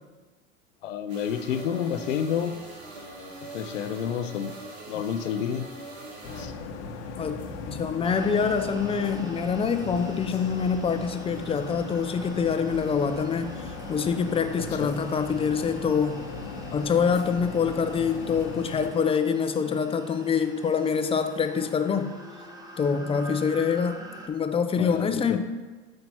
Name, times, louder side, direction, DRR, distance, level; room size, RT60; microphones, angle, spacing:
voice 1, 0.8-2.7 3.5-4.5 4.9-5.7 6.4-6.5 14.8-14.9 24.8-25.4, left 8 dB, 90° left, 10 dB, 0.5 m, -29 dB
sound 1, 1.1-6.4, right 2 dB, 65° right, 2.1 m, -42 dB
sound 2, 6.2-18.9, left 4 dB, 70° left, 1.0 m, -38 dB
voice 2, 7.7-16.2 16.7-22.1 22.8-24.0 24.3-25.4, left 6 dB, 15° left, 8 dB, 0.5 m, -25 dB
sound 3, 8.0-24.3, right 1 dB, 10° right, 0.8 m, -45 dB
7.8 x 2.9 x 5.7 m, 1.3 s
hypercardioid pair, 85°, 36 cm